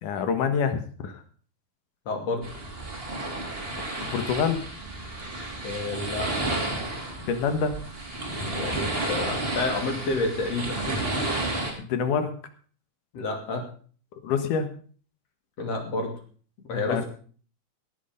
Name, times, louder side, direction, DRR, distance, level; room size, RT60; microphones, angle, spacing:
voice 1, 0.0-1.2 4.0-4.6 7.3-7.8 11.8-12.3 14.2-14.7 16.9-17.0, left 6 dB, 80° left, 8 dB, 2.9 m, -26 dB
voice 2, 2.1-2.6 5.6-6.3 8.5-11.0 13.1-13.7 15.6-16.1 16.7-17.1, left 2 dB, 55° left, 3 dB, 3.7 m, -29 dB
sound 1, 2.4-11.7, right 2 dB, 20° right, 3.1 m, -31 dB
18.0 x 8.6 x 5.2 m, 0.43 s
omnidirectional pair, 3.6 m